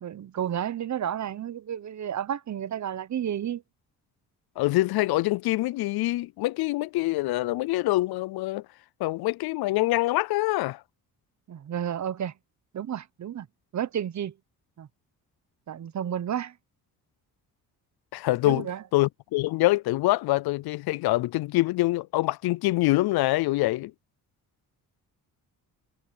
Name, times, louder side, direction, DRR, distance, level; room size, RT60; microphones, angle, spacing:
voice 1, 0.0-3.6 11.5-12.3 12.7-13.5 13.7-14.3 14.8-14.9 15.7-16.5 18.4-18.8, right 9 dB, 45° right, 1.0 m, -31 dB
voice 2, 4.6-8.6 9.0-10.8 18.1-18.7 18.9-23.9, left 18 dB, 75° left, 0.5 m, -25 dB
cardioid pair, 90°, 38 cm